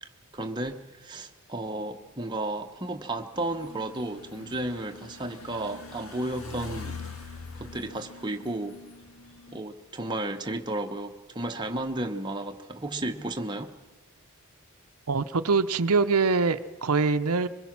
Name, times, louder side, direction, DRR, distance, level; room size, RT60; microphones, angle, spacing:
voice 1, 0.0-7.0 7.6-8.8 9.5-13.7, right 1 dB, 20° right, 1.0 m, -33 dB
sound 1, 3.3-9.6, left 4 dB, 75° left, 1.8 m, -43 dB
voice 2, 15.1-17.5, right 4 dB, 90° right, 0.7 m, -24 dB
24.0 x 21.5 x 6.0 m
head